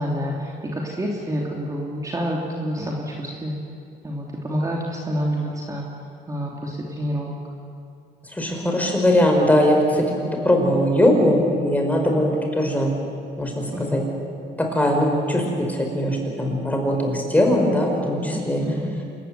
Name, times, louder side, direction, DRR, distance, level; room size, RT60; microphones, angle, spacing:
voice 1, 0.0-3.6 4.0-5.8 6.3-7.4 10.1-10.3 13.7-13.8 18.2-18.9, equal, 20° right, -2 dB, 3.2 m, -28 dB
voice 2, 8.3-10.0 10.4-12.9 13.4-14.0 14.6-18.6, left 1 dB, 10° left, 1 dB, 5.3 m, -20 dB
27.5 x 15.0 x 9.6 m, 2.4 s
cardioid pair, 110°, 17 cm